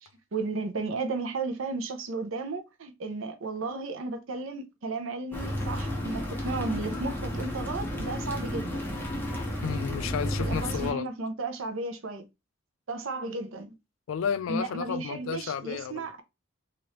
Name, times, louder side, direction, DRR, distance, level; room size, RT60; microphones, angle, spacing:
voice 1, 0.0-8.9 10.4-12.3 12.9-13.7 14.5-16.2, right 3 dB, 75° right, 0.6 m, -34 dB
sound 1, 5.3-10.9, equal, 10° left, 0.8 m, -32 dB
voice 2, 9.6-11.1 14.1-16.1, left 7 dB, 75° left, 0.3 m, -32 dB
3.2 x 2.5 x 2.9 m
head